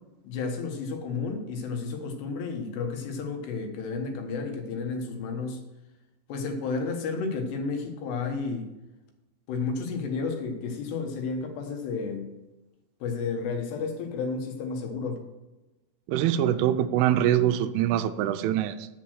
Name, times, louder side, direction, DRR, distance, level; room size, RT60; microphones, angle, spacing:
voice 1, 0.2-5.6 6.3-8.7 9.5-12.3 13.0-15.2, left 4 dB, 70° left, 3 dB, 3.2 m, -32 dB
voice 2, 16.1-18.9, right 11 dB, 90° right, 9 dB, 3.1 m, -24 dB
8.3 x 7.5 x 6.2 m, 1.0 s
omnidirectional pair, 5.6 m